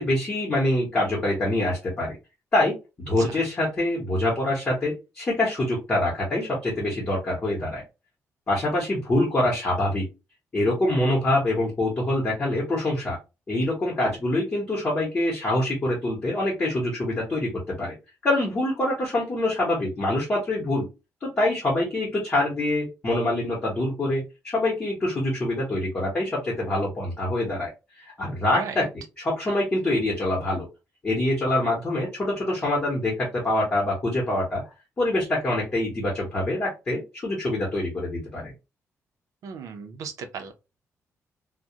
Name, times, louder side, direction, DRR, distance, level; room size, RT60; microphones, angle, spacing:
voice 1, 0.0-2.2 2.5-2.7 3.1-7.8 8.5-10.0 10.5-13.2 13.5-17.9 18.2-20.9 21.2-27.7 28.2-28.9 29.2-30.7 31.0-34.6 35.0-38.5, left 1 dB, 25° left, 0.9 m, -25 dB
voice 2, 28.5-28.9 39.4-40.5, right 6 dB, 90° right, 0.5 m, -36 dB
2.3 x 2.1 x 2.7 m
wide cardioid pair, 175°, 6 cm